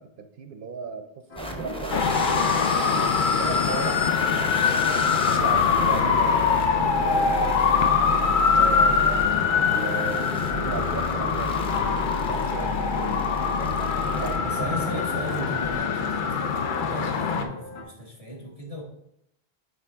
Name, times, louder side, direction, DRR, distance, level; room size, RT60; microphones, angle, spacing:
voice 1, 0.0-2.2 2.9-4.0 4.3-4.6 5.1-9.3 9.6-11.6 12.2-13.2 14.1-15.5, right 5 dB, 65° right, 7 dB, 0.7 m, -36 dB
sound 1, 1.3-17.8, left 2 dB, 90° left, 1.2 m, -41 dB
sound 2, 1.4-15.8, equal, 5° left, 0.6 m, -35 dB
Traffic noise roadway noise, 1.9-17.4, left 6 dB, 60° left, 0.7 m, -23 dB
voice 2, 14.4-18.8, equal, 35° left, -2 dB, 1.2 m, -37 dB
9.0 x 3.3 x 3.4 m, 0.77 s
omnidirectional pair, 1.0 m